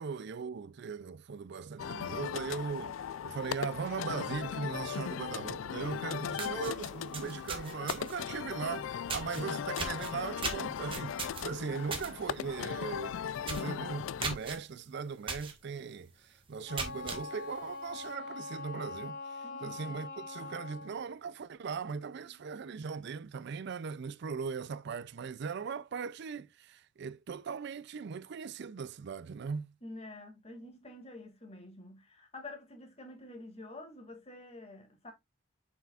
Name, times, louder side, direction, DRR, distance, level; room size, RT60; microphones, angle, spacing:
voice 1, 0.0-13.2 13.5-29.7, right 5 dB, 60° right, 0.4 m, -39 dB
sound 1, 1.8-14.4, left 8 dB, 75° left, 0.3 m, -38 dB
sound 2, 5.9-6.0 6.3-8.3 9.1-9.4 9.8-12.1 12.5-12.7 13.0-13.1 13.4-13.7 14.2-14.6 15.3-15.5 16.0-16.1 16.6-17.2, right 4 dB, 25° right, 1.6 m, -37 dB
Wind instrument woodwind instrument, 16.6-21.0, left 3 dB, 50° left, 4.1 m, -43 dB
voice 2, 19.4-20.0 22.2-22.3 29.8-35.1, left 2 dB, 35° left, 2.2 m, -48 dB
7.4 x 5.9 x 2.4 m
head